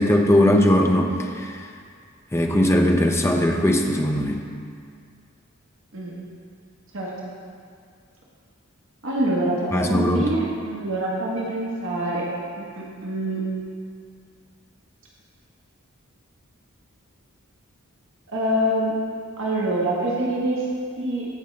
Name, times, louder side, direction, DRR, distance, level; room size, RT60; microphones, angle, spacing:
voice 1, 0.0-1.6 2.3-4.4 9.7-10.3, left 1 dB, 10° left, 2 dB, 0.6 m, -19 dB
voice 2, 5.9-6.2 6.9-7.3 9.0-12.3 12.6-13.4 18.3-18.9 19.4-20.6 21.0-21.3, right 1 dB, 65° right, -5 dB, 1.4 m, -25 dB
15.0 x 5.2 x 3.3 m, 2.2 s
head